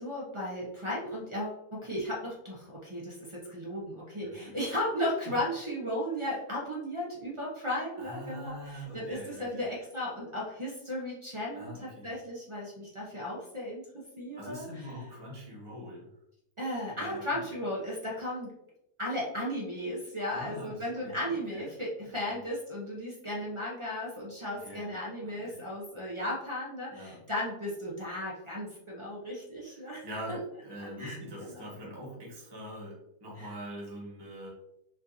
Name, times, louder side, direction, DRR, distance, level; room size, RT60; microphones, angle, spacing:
voice 1, 0.0-14.6 16.6-18.5 19.0-30.0 31.0-31.6 33.4-33.5, left 1 dB, 50° right, -5 dB, 0.3 m, -35 dB
voice 2, 4.2-4.6 5.2-5.3 8.0-9.7 11.5-12.1 14.4-16.1 16.8-17.5 20.3-21.7 22.0-22.4 24.6-25.0 25.2-25.6 26.9-27.2 28.4-28.5 29.7-34.5, equal, 20° right, -5 dB, 1.0 m, -44 dB
4.3 x 2.7 x 2.6 m, 0.83 s
omnidirectional pair, 1.8 m